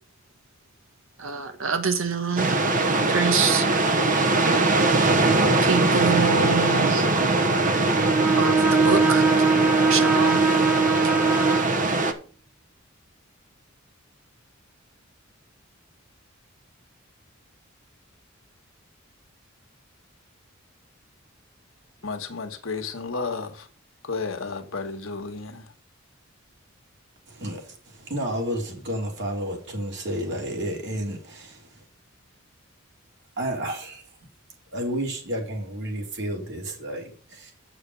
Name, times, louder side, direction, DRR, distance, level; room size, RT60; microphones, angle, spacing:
voice 1, 1.2-2.5 3.1-3.6 5.6-7.0 8.3-9.3 9.9-10.4, right 5 dB, 75° right, 1.3 m, -25 dB
sound 1, 2.4-12.1, right 2 dB, 40° right, 1.1 m, -21 dB
Bowed string instrument, 8.0-11.7, right 4 dB, 5° right, 0.4 m, -21 dB
voice 2, 22.0-23.7 24.0-25.6, left 4 dB, 75° left, 1.5 m, -32 dB
voice 3, 27.3-31.6 33.4-34.0 34.7-37.5, right 1 dB, 60° right, 3.4 m, -31 dB
8.1 x 6.7 x 5.3 m
head